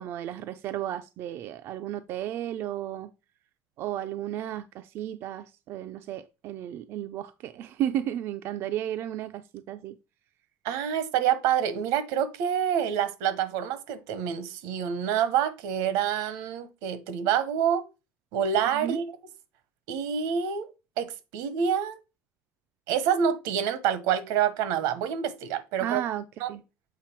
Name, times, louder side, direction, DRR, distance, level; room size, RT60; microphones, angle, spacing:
voice 1, 0.0-3.1 3.8-10.0 18.7-19.0 25.8-26.6, right 11 dB, 45° right, 0.4 m, -33 dB
voice 2, 10.6-17.8 18.3-19.0 19.9-20.7 21.0-22.0 22.9-26.0 26.4-26.5, right 8 dB, 85° right, 1.1 m, -27 dB
7.5 x 4.0 x 4.5 m
cardioid pair, 170°, 6 cm